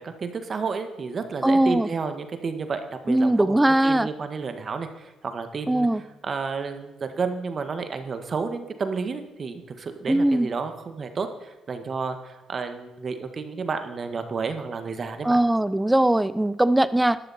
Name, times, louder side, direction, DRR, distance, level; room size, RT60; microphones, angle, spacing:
voice 1, 0.0-5.9 6.2-15.4, right 5 dB, 45° right, 8 dB, 1.7 m, -31 dB
voice 2, 1.4-1.9 3.1-4.1 5.7-6.0 10.1-10.5 15.2-17.2, right 1 dB, 10° right, 16 dB, 0.7 m, -20 dB
12.5 x 12.0 x 4.3 m, 1.1 s
supercardioid pair, 65°, 0 cm